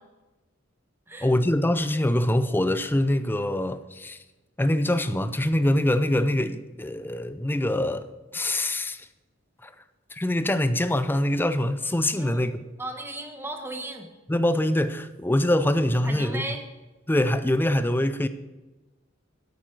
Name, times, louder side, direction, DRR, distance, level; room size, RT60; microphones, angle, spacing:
voice 1, 1.2-4.2 4.6-8.1 8.3-9.1 9.6-9.7 10.1-12.6 14.3-16.4 17.1-18.3, left 1 dB, 10° left, 0.5 m, -24 dB
voice 2, 12.8-14.1 16.0-16.6, right 2 dB, 10° right, 1.3 m, -35 dB
9.2 x 8.5 x 6.0 m
head